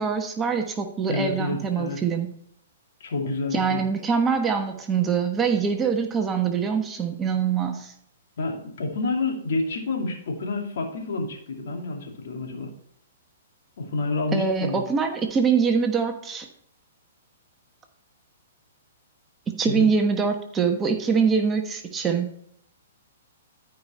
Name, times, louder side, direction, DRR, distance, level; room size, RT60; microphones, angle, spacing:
voice 1, 0.0-2.3 3.5-7.9 14.3-16.5 19.6-22.3, right 6 dB, 20° right, 4 dB, 1.1 m, -24 dB
voice 2, 1.1-2.0 3.0-3.8 8.4-12.7 13.8-14.8 19.6-19.9, left 3 dB, 65° left, 1 dB, 2.4 m, -29 dB
13.5 x 5.0 x 4.3 m, 0.68 s
hypercardioid pair, 130°, 0 cm